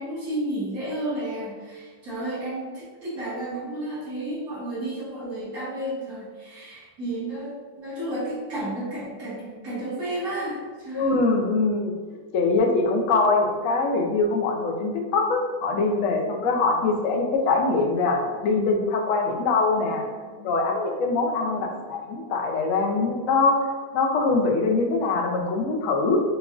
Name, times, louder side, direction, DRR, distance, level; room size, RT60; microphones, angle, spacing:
voice 1, 0.0-11.2 19.8-20.4 21.4-21.7, right 1 dB, 50° right, -8 dB, 1.7 m, -32 dB
voice 2, 10.9-11.9 12.3-20.0 20.4-26.2, left 3 dB, 80° left, 1 dB, 0.7 m, -23 dB
6.6 x 2.4 x 2.5 m, 1.5 s
omnidirectional pair, 2.1 m